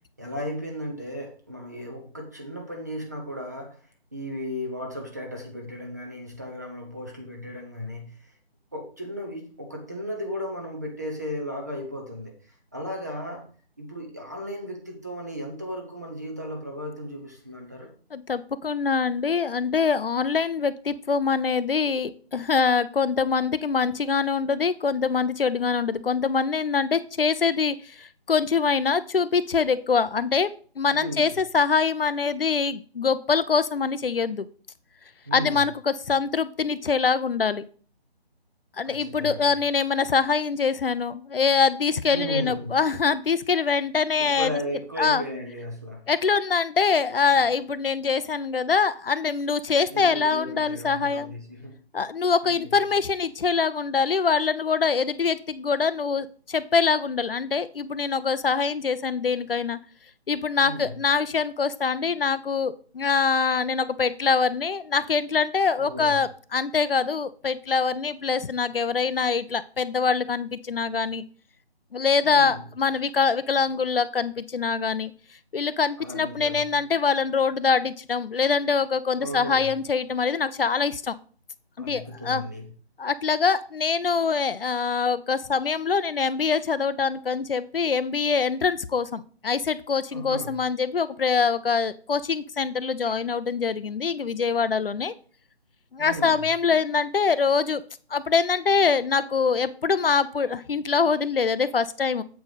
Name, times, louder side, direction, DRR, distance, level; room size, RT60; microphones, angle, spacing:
voice 1, 0.2-3.8 4.1-8.2 8.7-12.4 12.7-13.5 13.8-17.9 30.9-31.4 35.3-35.6 38.8-39.5 42.1-42.8 44.2-46.1 47.3-47.4 49.9-51.8 52.5-52.8 60.6-60.9 65.8-66.2 72.2-72.6 76.0-76.7 79.2-79.7 81.8-82.7 90.1-90.6 93.0-93.1 96.0-96.4, equal, 15° right, 1 dB, 0.7 m, -35 dB
voice 2, 18.1-34.5 35.3-37.6 38.8-44.6 45.0-45.2 46.1-51.3 51.9-59.8 60.3-71.2 71.9-75.1 75.5-81.1 81.8-82.4 83.0-95.1 95.9-97.8 98.1-102.2, left 5 dB, 60° left, 15 dB, 0.6 m, -24 dB
7.7 x 4.6 x 5.1 m, 0.41 s
figure-of-eight pair, 170°, 31 cm